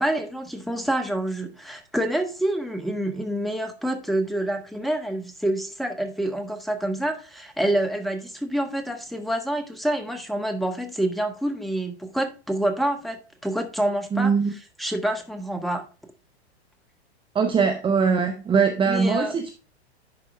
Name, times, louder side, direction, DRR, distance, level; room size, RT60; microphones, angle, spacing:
voice 1, 0.0-14.3 14.8-15.8 18.9-19.3, right 1 dB, ahead, 1.2 m, -27 dB
voice 2, 14.1-14.5 17.3-19.5, right 5 dB, 15° right, 0.8 m, -21 dB
11.0 x 4.5 x 3.3 m
hypercardioid pair, 100°, 33 cm